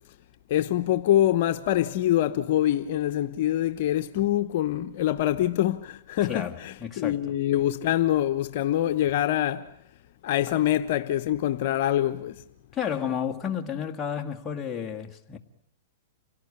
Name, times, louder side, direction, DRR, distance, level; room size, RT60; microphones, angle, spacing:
voice 1, 0.5-9.7 10.2-12.3, left 12 dB, 55° left, 1.0 m, -25 dB
voice 2, 6.2-7.2 12.7-15.4, left 8 dB, 15° left, 1.8 m, -31 dB
28.5 x 17.5 x 10.0 m
hypercardioid pair, 140°, 0 cm